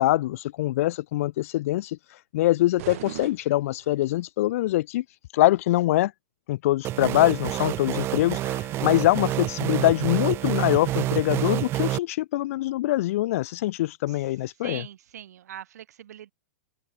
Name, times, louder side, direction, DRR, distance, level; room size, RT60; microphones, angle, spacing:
voice 1, 0.0-2.0 2.3-5.0 5.3-6.1 6.5-14.8, left 16 dB, 55° left, 1.1 m, -24 dB
sound 1, 2.8-4.3, right 16 dB, 55° right, 2.2 m, -40 dB
sound 2, 6.8-12.0, right 15 dB, 25° right, 1.1 m, -28 dB
voice 2, 14.6-16.3, right 11 dB, 75° right, 3.6 m, -41 dB
hypercardioid pair, 145°, 9 cm